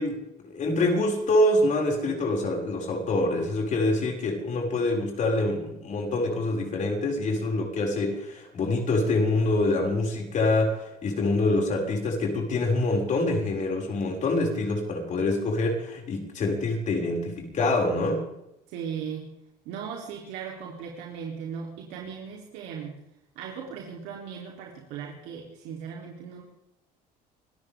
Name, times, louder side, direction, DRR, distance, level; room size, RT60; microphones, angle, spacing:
voice 1, 0.0-18.3, left 2 dB, 45° left, 0 dB, 6.2 m, -25 dB
voice 2, 18.7-19.3 19.7-23.0 23.4-26.4, right 7 dB, 80° right, -1 dB, 3.5 m, -37 dB
26.0 x 14.0 x 3.7 m, 0.85 s
cardioid pair, 105°, 17 cm